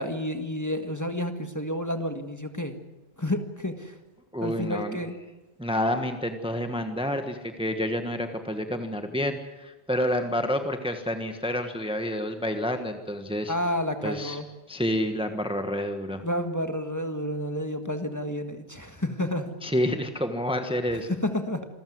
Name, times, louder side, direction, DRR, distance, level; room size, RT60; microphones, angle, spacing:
voice 1, 0.0-2.8 3.2-4.0 4.4-5.2 13.5-14.5 16.2-19.5 21.1-21.7, left 1 dB, 15° left, 6 dB, 1.7 m, -30 dB
voice 2, 4.3-5.0 5.6-13.5 14.0-14.4 14.7-16.2 19.6-21.1, equal, 5° right, 6 dB, 1.3 m, -29 dB
27.0 x 14.0 x 9.5 m, 1.1 s
omnidirectional pair, 1.1 m